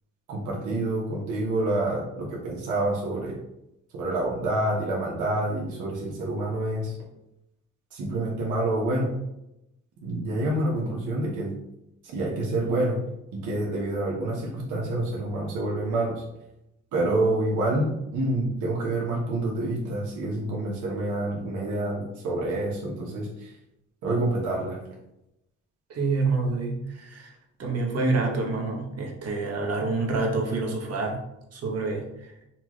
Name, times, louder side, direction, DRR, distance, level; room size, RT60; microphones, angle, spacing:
voice 1, 0.3-3.4 3.9-7.0 7.9-9.1 10.0-11.5 12.1-13.0 13.3-16.2 16.9-23.6 24.0-24.8, right 2 dB, 80° right, -3 dB, 1.1 m, -27 dB
voice 2, 25.9-27.3 27.6-31.2 31.5-32.3, right 3 dB, 55° right, 1 dB, 1.2 m, -27 dB
5.7 x 2.4 x 3.1 m, 0.85 s
cardioid pair, 90°, 30 cm